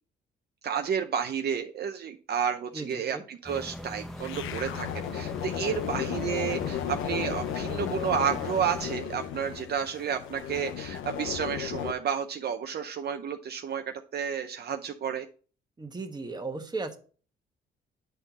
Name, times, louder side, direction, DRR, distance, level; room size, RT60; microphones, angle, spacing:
voice 1, 0.6-4.9 5.1-15.3, right 7 dB, 55° right, 6 dB, 0.6 m, -31 dB
voice 2, 2.7-3.2 15.8-17.0, right 3 dB, 20° right, 5 dB, 1.3 m, -36 dB
sound 1, 3.4-8.9, equal, ahead, 0.9 m, -41 dB
sound 2, 4.2-11.9, left 10 dB, 80° left, 0.6 m, -34 dB
9.3 x 4.4 x 4.0 m, 0.39 s
cardioid pair, 90°, 20 cm